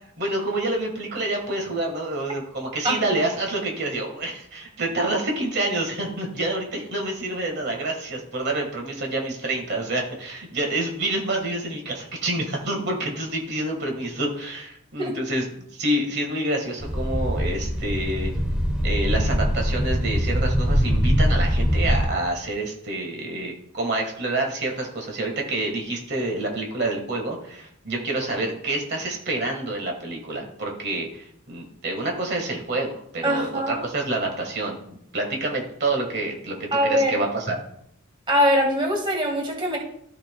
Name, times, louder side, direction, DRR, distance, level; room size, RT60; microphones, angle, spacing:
voice 1, 0.2-18.3 18.8-37.6, right 2 dB, 55° right, 1 dB, 1.5 m, -28 dB
sound 1, 16.8-22.1, equal, 5° right, 0.9 m, -22 dB
voice 2, 33.2-33.8 36.7-37.2 38.3-39.8, equal, 25° right, 0 dB, 1.6 m, -22 dB
14.0 x 5.7 x 2.2 m, 0.70 s
head